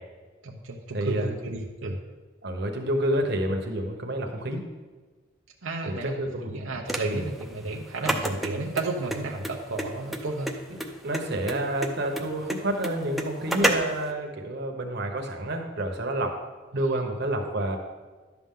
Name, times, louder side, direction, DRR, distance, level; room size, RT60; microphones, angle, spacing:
voice 1, 0.4-2.0 5.6-10.6 16.7-17.1, right 2 dB, 85° right, 0 dB, 0.8 m, -32 dB
voice 2, 0.9-1.3 2.4-4.6 5.8-6.6 7.0-7.3 11.0-16.4 16.7-17.8, right 1 dB, 55° right, 3 dB, 1.2 m, -29 dB
sound 1, 6.9-14.1, right 1 dB, ahead, 0.6 m, -30 dB
11.5 x 7.1 x 3.8 m, 1.3 s
head